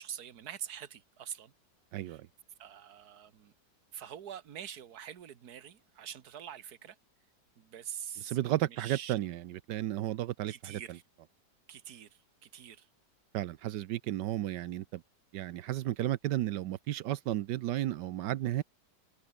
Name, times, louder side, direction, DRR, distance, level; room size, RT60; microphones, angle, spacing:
voice 1, 0.0-1.5 2.0-2.2 2.6-3.5 3.9-7.0 7.6-9.1 10.5-11.0 11.7-12.9, right 9 dB, 65° right, 1.7 m, -45 dB
voice 2, 1.9-2.3 8.2-10.8 13.3-15.0 15.3-18.6, right 13 dB, 85° right, 1.4 m, -33 dB
omnidirectional pair, 1.8 m